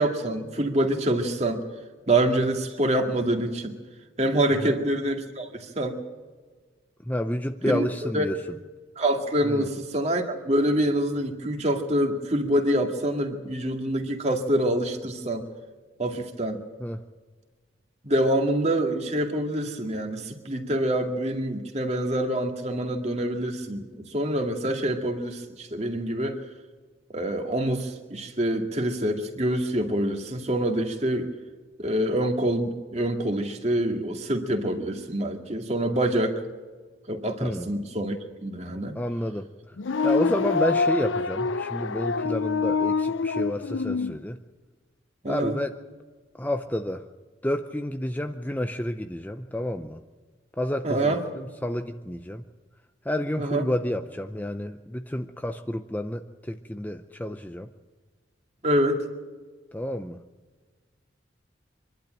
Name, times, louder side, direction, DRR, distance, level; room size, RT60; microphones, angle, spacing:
voice 1, 0.0-1.6 2.1-3.8 4.2-6.0 7.6-8.3 9.0-15.4 16.0-16.6 18.0-26.4 27.1-31.3 31.8-36.4 37.1-39.0 45.2-45.6 50.8-51.2 53.4-53.6 58.6-59.0, right 1 dB, 35° right, 4 dB, 2.2 m, -26 dB
voice 2, 7.1-8.4 9.4-9.6 16.8-17.0 37.4-37.7 38.9-39.5 40.0-44.4 45.3-45.8 46.4-47.0 47.4-50.0 50.6-52.4 53.0-57.7 59.7-60.2, left 1 dB, 10° left, 7 dB, 0.6 m, -30 dB
sound 1, 39.8-44.1, left 4 dB, 80° left, 0.6 m, -26 dB
25.0 x 12.0 x 8.9 m, 1.4 s
head